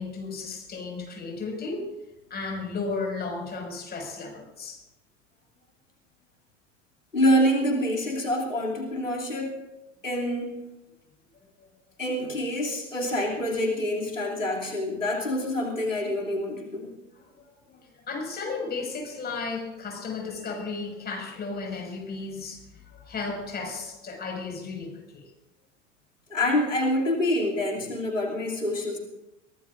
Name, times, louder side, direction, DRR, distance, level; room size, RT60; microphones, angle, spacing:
voice 1, 0.0-1.9 2.3-4.8 11.6-11.7 17.1-25.3, left 4 dB, 25° left, 1 dB, 5.8 m, -34 dB
voice 2, 7.1-9.6 10.0-10.6 12.0-16.9 26.3-29.0, left 1 dB, 85° left, 0 dB, 2.8 m, -26 dB
23.0 x 18.5 x 2.6 m, 0.97 s
figure-of-eight pair, 75°, 38 cm